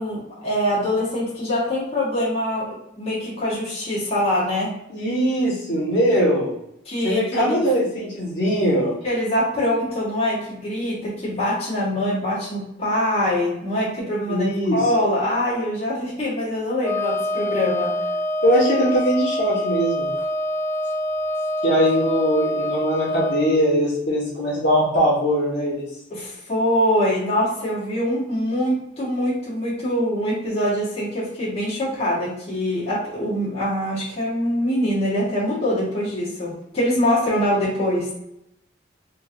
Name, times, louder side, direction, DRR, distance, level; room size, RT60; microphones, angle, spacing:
voice 1, 0.0-4.7 6.8-7.7 9.0-17.9 26.1-38.1, left 1 dB, 30° left, -8 dB, 1.4 m, -24 dB
voice 2, 4.9-6.5 7.0-8.9 14.3-14.8 18.4-20.1 21.6-25.8, equal, 65° left, -7 dB, 1.3 m, -21 dB
Wind instrument woodwind instrument, 16.8-23.6, left 1 dB, 15° left, 0.4 m, -25 dB
3.6 x 2.9 x 2.6 m, 0.80 s
head